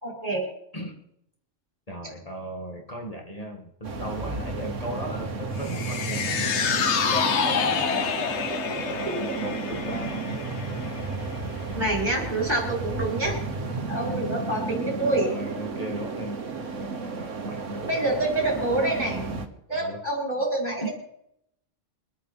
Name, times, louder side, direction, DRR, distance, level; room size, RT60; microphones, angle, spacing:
voice 1, 0.0-0.5 9.1-9.2 11.7-13.4 13.9-15.3 17.8-19.2 19.7-20.9, right 2 dB, 35° right, -3 dB, 5.0 m, -27 dB
voice 2, 1.9-8.1 8.7-10.5 15.1-17.9 19.7-20.0 20.8-20.9, right 1 dB, 30° left, -1 dB, 2.2 m, -36 dB
sound 1, 3.8-19.5, right 4 dB, 85° right, 1.7 m, -33 dB
sound 2, 5.6-12.1 12.4-12.5, left 7 dB, 70° left, 1.2 m, -28 dB
24.0 x 9.4 x 4.4 m, 0.76 s
omnidirectional pair, 1.2 m